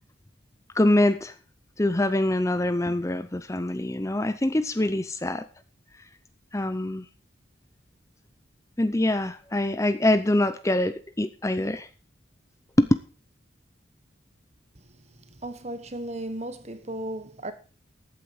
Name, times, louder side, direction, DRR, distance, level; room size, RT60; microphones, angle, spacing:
voice 1, 0.7-1.3 1.8-5.4 6.5-7.0 8.8-11.9 12.8-12.9, left 1 dB, 15° left, 0.6 m, -24 dB
voice 2, 15.3-17.5, right 1 dB, 35° right, 1.4 m, -35 dB
14.0 x 9.0 x 4.8 m
head